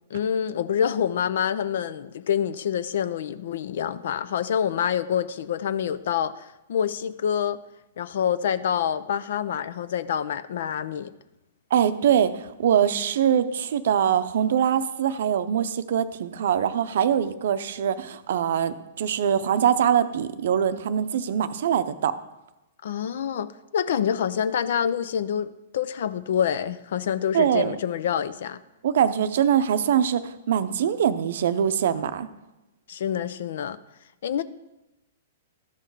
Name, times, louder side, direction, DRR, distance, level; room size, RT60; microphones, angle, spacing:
voice 1, 0.1-7.6 8.0-11.1 22.8-28.6 32.9-33.8 34.2-34.4, left 8 dB, 65° left, 0.5 m, -27 dB
voice 2, 11.7-22.2 27.3-27.8 28.8-32.3, right 9 dB, 65° right, 0.6 m, -23 dB
12.5 x 5.7 x 4.8 m
hypercardioid pair, 115°, 0 cm